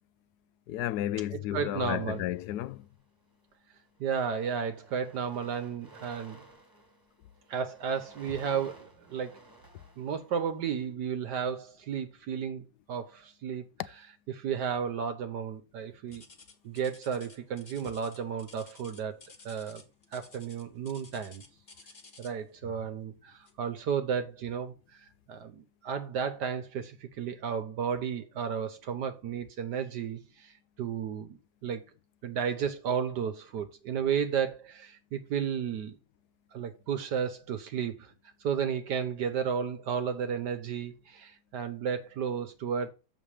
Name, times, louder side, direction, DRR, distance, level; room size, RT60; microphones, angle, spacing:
voice 1, 0.7-2.8, left 13 dB, 70° left, 1.0 m, -32 dB
voice 2, 1.3-2.2 4.0-6.4 7.5-9.4 10.0-13.7 14.3-16.2 16.6-19.2 19.4-19.8 20.1-21.4 22.2-31.8 32.2-36.0 36.5-38.1 38.4-42.9, right 7 dB, 70° right, 1.4 m, -33 dB
sound 1, 2.0-3.0 3.8-4.0 4.3-10.7, right 2 dB, 10° right, 1.6 m, -55 dB
sound 2, 16.1-22.5 23.4-23.7 24.3-24.4 25.0-25.1, left 4 dB, 35° left, 1.3 m, -54 dB
7.3 x 5.9 x 4.8 m
omnidirectional pair, 2.0 m